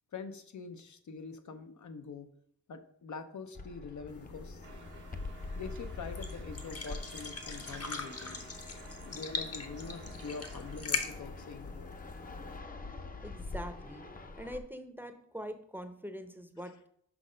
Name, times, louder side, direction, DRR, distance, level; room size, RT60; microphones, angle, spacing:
voice 1, 0.1-2.3 2.7-4.7 5.5-8.4 9.0-12.0, left 4 dB, 75° left, 7 dB, 0.9 m, -44 dB
Fixed-wing aircraft airplane, 3.6-14.6, left 3 dB, 30° left, 0.7 m, -45 dB
sound 1, 4.1-12.6, left 4 dB, 50° left, 1.1 m, -42 dB
sound 2, 4.6-11.2, right 6 dB, 90° right, 1.4 m, -54 dB
voice 2, 13.2-14.0 14.4-16.9, equal, 5° right, 7 dB, 0.7 m, -43 dB
6.2 x 5.4 x 5.0 m, 0.69 s
wide cardioid pair, 120°, 30 cm